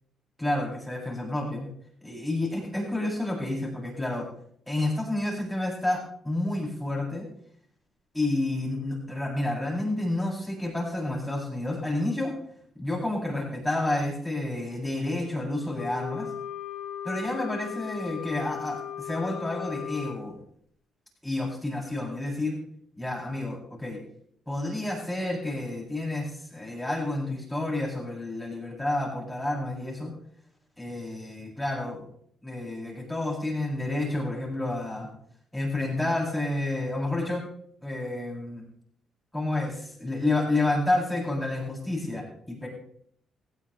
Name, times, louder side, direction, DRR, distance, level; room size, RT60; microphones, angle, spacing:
voice 1, 0.4-1.7 2.0-4.3 4.7-7.2 8.1-12.3 12.8-16.3 17.0-20.4 21.2-22.6 23.0-24.0 24.5-30.1 30.8-32.0 32.4-35.1 35.5-37.4 37.8-38.6 39.3-42.7, left 2 dB, 10° left, -3 dB, 7.9 m, -30 dB
Wind instrument woodwind instrument, 15.7-20.2, left 10 dB, 85° left, 5.6 m, -37 dB
19.0 x 16.0 x 3.4 m, 0.66 s
cardioid pair, 90°, 0 cm